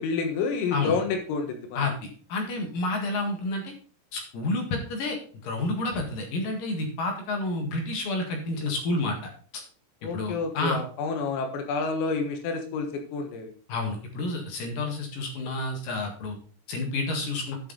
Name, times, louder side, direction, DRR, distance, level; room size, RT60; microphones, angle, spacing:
voice 1, 0.0-1.9 10.0-13.5, left 4 dB, 80° left, 4 dB, 4.2 m, -29 dB
voice 2, 1.8-3.7 4.1-5.2 5.4-9.6 10.1-10.8 13.7-16.4 16.7-17.6, left 2 dB, 55° left, 2 dB, 2.7 m, -30 dB
12.0 x 6.0 x 3.9 m, 0.42 s
omnidirectional pair, 6.0 m